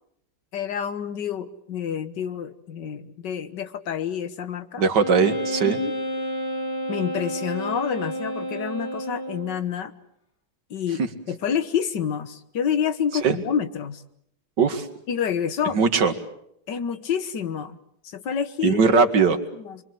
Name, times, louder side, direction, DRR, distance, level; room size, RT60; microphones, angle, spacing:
voice 1, 0.5-4.8 5.6-5.9 6.9-9.9 10.7-11.0 11.3-14.0 15.1-15.8 16.7-17.8 18.0-19.0 19.5-19.8, left 8 dB, 90° left, 11 dB, 2.0 m, -28 dB
voice 2, 4.8-5.8 13.2-13.4 14.6-14.9 15.7-16.1 18.6-19.4, right 5 dB, 80° right, 7 dB, 2.3 m, -19 dB
Wind instrument woodwind instrument, 5.0-9.6, equal, 70° left, 3.7 m, -30 dB
26.0 x 23.5 x 7.8 m, 0.73 s
omnidirectional pair, 1.8 m